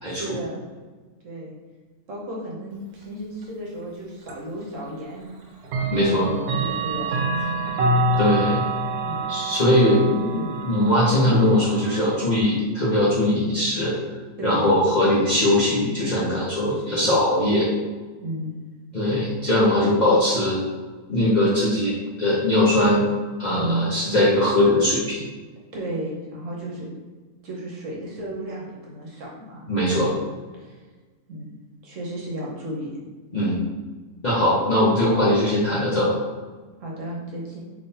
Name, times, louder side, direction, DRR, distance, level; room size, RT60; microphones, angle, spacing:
voice 1, 0.0-0.7 1.2-1.5 2.1-5.3 5.8-7.6 9.0-9.3 14.4-14.7 16.8-17.2 18.2-18.5 23.6-23.9 25.7-26.9 27.4-30.2 30.5-30.8 31.3-31.5 31.8-33.0 36.8-37.6, right 1 dB, 60° right, -3 dB, 1.1 m, -33 dB
Clock, 4.3-4.4 5.6-12.4, right 2 dB, 80° right, 1.1 m, -26 dB
voice 2, 5.9-6.3 8.2-8.6 9.3-14.0 14.4-17.7 18.9-20.6 21.1-23.0 23.4-25.2 29.7-30.1 33.3-33.6 34.2-36.2, left 1 dB, 40° left, -9 dB, 0.7 m, -20 dB
3.6 x 3.1 x 2.7 m, 1.3 s
omnidirectional pair, 1.6 m